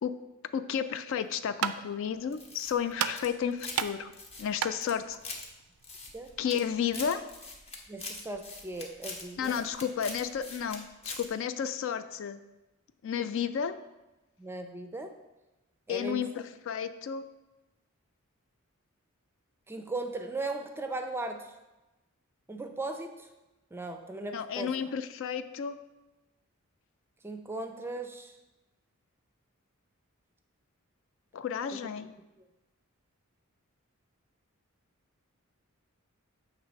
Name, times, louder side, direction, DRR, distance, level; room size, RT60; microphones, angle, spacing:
voice 1, 0.5-4.1 4.4-5.2 6.4-7.2 9.4-12.4 13.0-13.7 15.9-17.2 24.3-25.8 31.3-32.1, left 8 dB, 60° left, 11 dB, 0.3 m, -32 dB
sound 1, 1.1-6.4, right 9 dB, 80° right, 0.3 m, -36 dB
sound 2, 2.3-3.9 4.1-5.5 5.8-6.6 6.9-10.8 11.0-11.3, left 3 dB, 30° left, 0.8 m, -42 dB
voice 2, 7.9-9.6 14.4-15.1 15.9-16.2 19.7-21.5 22.5-23.3 23.7-24.8 27.2-28.4, right 2 dB, 10° right, 6 dB, 0.4 m, -37 dB
7.3 x 3.1 x 5.1 m, 1.0 s
head